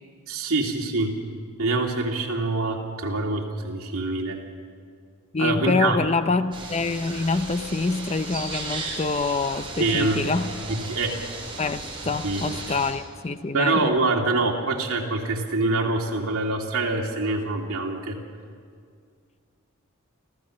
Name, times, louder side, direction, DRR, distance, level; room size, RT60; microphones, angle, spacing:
voice 1, 0.3-1.1 1.6-4.4 5.4-6.0 9.8-10.2 10.7-11.2 12.2-12.8 13.5-18.2, right 3 dB, 70° right, 0 dB, 2.7 m, -25 dB
voice 2, 5.3-10.5 11.6-13.9, left 3 dB, 30° left, 11 dB, 0.6 m, -26 dB
sound 1, 6.5-12.9, right 3 dB, 25° right, 4.3 m, -36 dB
27.5 x 15.0 x 6.5 m, 2.2 s
head